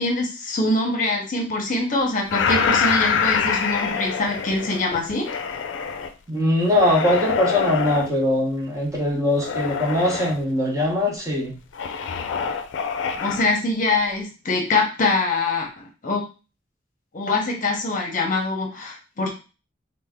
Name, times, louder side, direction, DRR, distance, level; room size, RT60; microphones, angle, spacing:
voice 1, 0.0-5.3 13.2-16.2 17.1-19.3, left 2 dB, 45° left, 1 dB, 0.7 m, -24 dB
sound 1, 2.3-6.1 6.6-8.1 9.3-10.4 11.7-13.5, left 6 dB, 80° left, 0.4 m, -25 dB
voice 2, 6.3-11.6, left 1 dB, 15° right, -2 dB, 0.7 m, -21 dB
3.3 x 2.1 x 3.5 m, 0.33 s
head